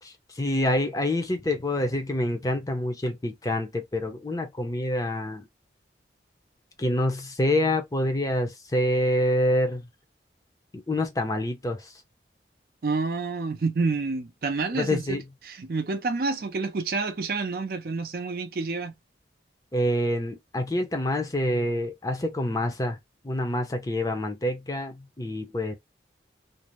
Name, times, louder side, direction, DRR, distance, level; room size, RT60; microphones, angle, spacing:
voice 1, 0.0-5.5 6.8-9.8 10.7-11.9 14.7-15.2 19.7-23.0 23.2-25.8, left 1 dB, 20° left, 0.5 m, -27 dB
voice 2, 12.8-15.2 15.4-18.9, right 4 dB, 55° right, 0.5 m, -28 dB
2.5 x 2.0 x 3.0 m
head